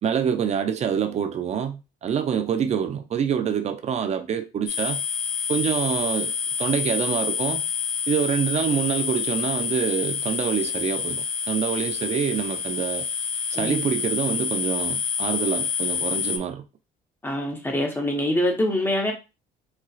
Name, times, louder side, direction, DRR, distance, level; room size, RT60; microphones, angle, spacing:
voice 1, 0.0-5.0 5.5-6.3 6.6-7.6 8.1-13.1 13.5-16.6, right 8 dB, 40° right, 0.5 m, -26 dB
sound 1, 4.7-16.4, left 7 dB, 55° left, 0.7 m, -28 dB
voice 2, 17.2-19.1, left 1 dB, 15° left, 1.0 m, -24 dB
4.3 x 2.4 x 2.4 m
cardioid pair, 110°, 17 cm